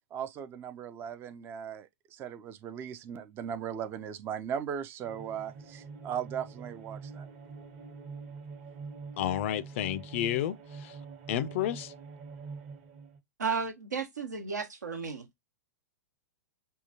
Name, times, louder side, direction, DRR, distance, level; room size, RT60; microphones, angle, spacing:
voice 1, 0.1-7.3, right 8 dB, 25° right, 0.4 m, -38 dB
sound 1, 5.0-13.2, right 4 dB, 40° right, 1.0 m, -45 dB
voice 2, 9.2-10.9 11.3-11.9, left 12 dB, 45° left, 0.4 m, -31 dB
voice 3, 13.4-15.3, right 5 dB, 70° right, 1.0 m, -33 dB
5.5 x 2.3 x 2.8 m
figure-of-eight pair, 105°, 9 cm